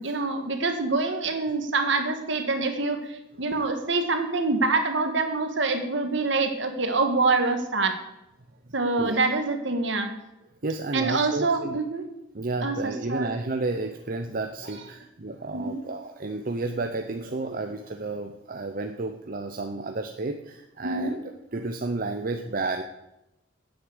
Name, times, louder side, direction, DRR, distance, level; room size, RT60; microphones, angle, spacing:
voice 1, 0.0-8.0 8.7-10.1 10.9-12.0 12.6-13.3 15.5-15.8 17.4-17.6 20.8-21.2, right 3 dB, 60° right, 6 dB, 1.7 m, -26 dB
voice 2, 10.6-11.8 12.3-21.2 21.5-22.8, right 3 dB, 45° right, 5 dB, 0.7 m, -31 dB
9.7 x 8.0 x 8.2 m, 0.89 s
head